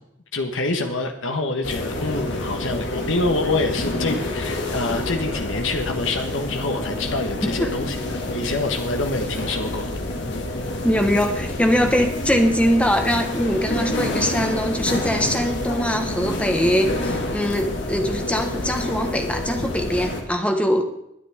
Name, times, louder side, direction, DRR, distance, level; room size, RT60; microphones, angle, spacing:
voice 1, 0.3-9.9, left 2 dB, 75° left, 5 dB, 1.4 m, -26 dB
sound 1, 1.6-20.2, left 1 dB, 60° left, 2.3 m, -28 dB
voice 2, 10.8-20.8, equal, 5° left, 5 dB, 1.4 m, -22 dB
21.0 x 9.9 x 3.7 m, 0.81 s
head